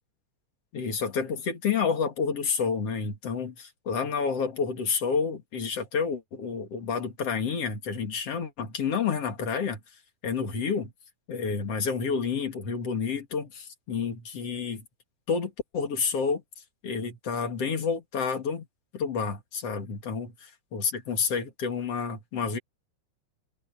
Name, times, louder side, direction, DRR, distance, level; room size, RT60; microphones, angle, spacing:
voice 1, 0.7-9.8 10.2-10.9 11.3-14.8 15.3-16.4 16.8-18.7 18.9-20.3 20.7-22.6, left 5 dB, 50° left, 3.2 m, -29 dB
omnidirectional pair, 3.7 m